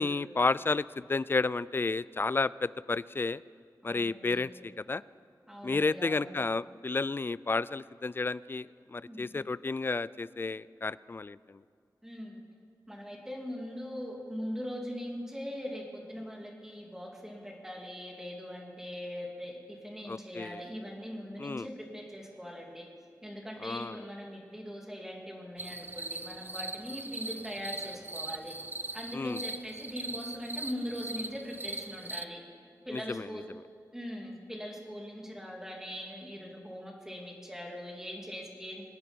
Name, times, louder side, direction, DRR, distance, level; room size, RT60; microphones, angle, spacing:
voice 1, 0.0-3.4 3.8-5.0 5.6-11.6 20.1-20.6 21.4-21.7 23.6-24.0 29.1-29.4 32.9-33.6, left 3 dB, 30° left, 19 dB, 0.3 m, -32 dB
voice 2, 3.8-4.5 5.5-6.3 9.1-9.4 12.0-12.4 12.9-22.8 23.2-28.5 28.9-32.4 32.9-33.4 33.9-38.8, equal, 5° right, 0 dB, 2.8 m, -41 dB
sound 1, 25.6-32.3, right 2 dB, 30° right, 0.6 m, -40 dB
25.0 x 8.7 x 5.4 m, 2.4 s
wide cardioid pair, 75°, 7 cm